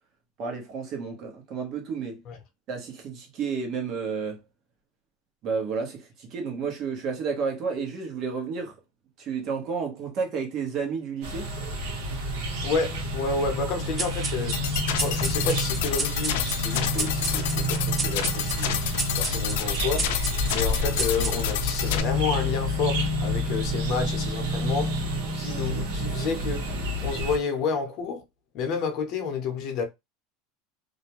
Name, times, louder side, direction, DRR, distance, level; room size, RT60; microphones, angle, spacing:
voice 1, 0.4-2.2 2.7-4.4 5.4-8.8 9.2-11.5, right 5 dB, 45° right, 1.0 m, -31 dB
sound 1, 11.2-27.4, equal, 75° right, 1.0 m, -29 dB
voice 2, 12.6-14.6 15.0-18.8 19.2-20.1 20.5-25.0 25.3-26.6 27.0-28.2 28.5-29.8, left 5 dB, 50° left, 0.7 m, -30 dB
sound 2, 14.0-21.7, right 3 dB, 20° right, 0.4 m, -34 dB
sound 3, 14.5-22.0, left 8 dB, 80° left, 0.4 m, -29 dB
2.5 x 2.2 x 2.9 m
supercardioid pair, 140°, 0 cm